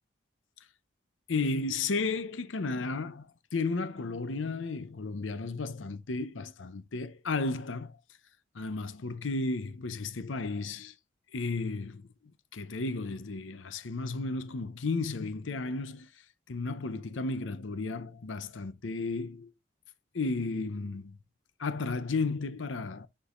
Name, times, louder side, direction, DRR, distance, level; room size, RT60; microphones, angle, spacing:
voice 1, 1.3-3.3 3.5-7.9 8.5-10.9 11.3-12.1 12.5-16.1 16.5-19.5 20.1-21.2 21.6-23.1, left 3 dB, 85° left, 0.7 m, -33 dB
9.8 x 4.6 x 2.5 m
head